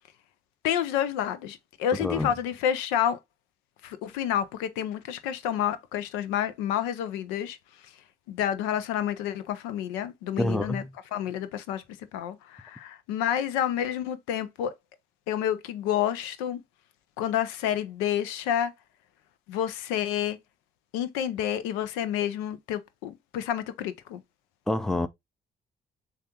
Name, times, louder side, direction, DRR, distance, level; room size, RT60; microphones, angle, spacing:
voice 1, 0.6-3.2 3.8-7.9 8.3-10.8 11.1-11.8 12.1-14.7 15.3-16.6 17.2-18.7 19.5-20.4 20.9-24.2, left 10 dB, 90° left, 0.5 m, -29 dB
voice 2, 10.4-10.9 24.7-25.1, left 1 dB, 5° left, 0.5 m, -27 dB
6.7 x 2.4 x 2.8 m
supercardioid pair, 55°, 20 cm